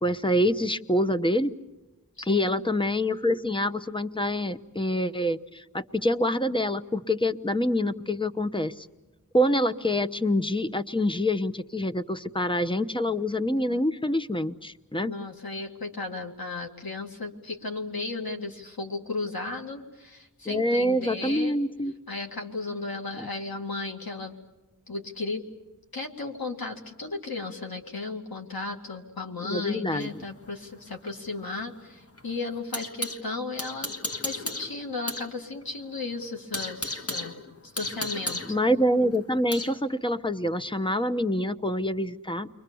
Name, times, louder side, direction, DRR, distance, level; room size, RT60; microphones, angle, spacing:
voice 1, 0.0-1.5 2.3-8.9 9.3-15.1 20.5-21.9 23.2-23.3 29.5-30.2 38.5-42.5, left 1 dB, 15° left, 10 dB, 0.9 m, -26 dB
voice 2, 2.2-2.7 15.0-21.6 22.1-24.4 24.9-25.4 25.9-33.9 34.2-37.4 37.6-38.4, left 3 dB, 85° left, 2 dB, 2.3 m, -35 dB
sound 1, 30.0-33.2 33.6-35.3 35.6-35.7 36.1-39.8, left 2 dB, 40° left, 1.6 m, -35 dB
30.0 x 23.5 x 7.0 m, 1.1 s
wide cardioid pair, 65°, 35 cm